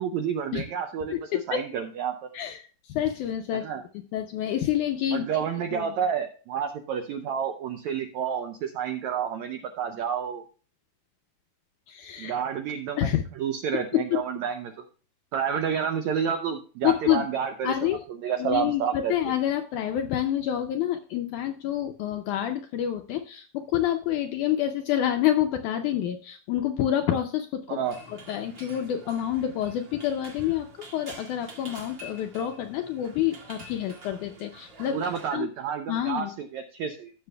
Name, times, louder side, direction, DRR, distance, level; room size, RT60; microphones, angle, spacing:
voice 1, 0.0-2.3 3.5-3.8 5.1-10.4 12.2-13.1 13.4-14.9 15.3-17.9 18.2-19.2 27.7-27.9 34.9-37.1, right 7 dB, 90° right, 6 dB, 1.6 m, -30 dB
voice 2, 2.3-3.7 4.1-5.4 5.7-5.9 11.9-12.4 13.0-13.2 13.9-14.2 16.8-17.3 17.6-18.0 18.4-27.8 28.1-30.7 30.9-35.5 35.9-36.3, left 11 dB, 80° left, 6 dB, 1.8 m, -28 dB
sound 1, 27.8-35.3, right 2 dB, 40° right, 2.0 m, -47 dB
16.0 x 6.9 x 2.2 m, 0.40 s
omnidirectional pair, 4.2 m